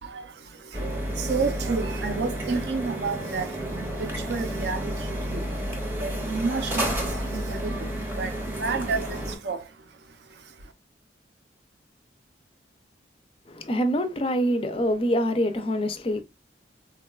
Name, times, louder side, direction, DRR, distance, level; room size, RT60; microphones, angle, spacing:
voice 1, 0.0-10.7, right 4 dB, 65° right, 0.5 m, -32 dB
sound 1, 0.7-9.4, equal, 15° right, 0.7 m, -31 dB
voice 2, 13.5-16.2, equal, 30° left, 0.4 m, -25 dB
3.8 x 2.2 x 2.2 m
head